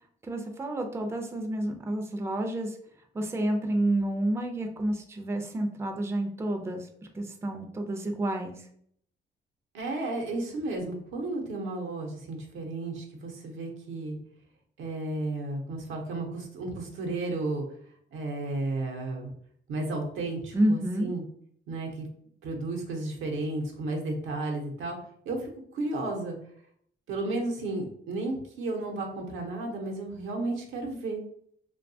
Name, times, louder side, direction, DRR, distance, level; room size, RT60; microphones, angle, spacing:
voice 1, 0.2-2.8 3.1-6.9 7.1-8.7 20.5-21.1, right 1 dB, 15° right, 4 dB, 0.4 m, -29 dB
voice 2, 9.7-14.2 14.8-17.6 18.1-19.3 19.7-21.2 21.7-22.1 22.4-25.0 25.2-26.3 27.1-31.2, right 2 dB, 85° right, 1 dB, 0.7 m, -33 dB
2.7 x 2.2 x 2.6 m, 0.64 s
cardioid pair, 90°, 20 cm